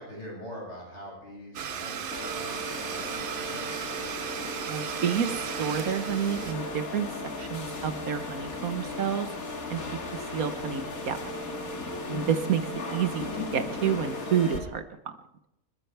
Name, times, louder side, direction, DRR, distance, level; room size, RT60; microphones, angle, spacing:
voice 1, 0.0-3.8, equal, 50° left, -3 dB, 7.9 m, -43 dB
Domestic sounds home sounds, 1.5-6.5, right 8 dB, 50° right, 0.7 m, -36 dB
sound 1, 2.1-14.6, left 2 dB, 75° left, 2.4 m, -36 dB
voice 2, 4.7-7.1 7.3-9.3 9.7-9.8 10.1-11.2 12.1-14.8, right 8 dB, 80° right, 9 dB, 1.5 m, -29 dB
29.0 x 13.5 x 3.4 m, 0.86 s
omnidirectional pair, 1.5 m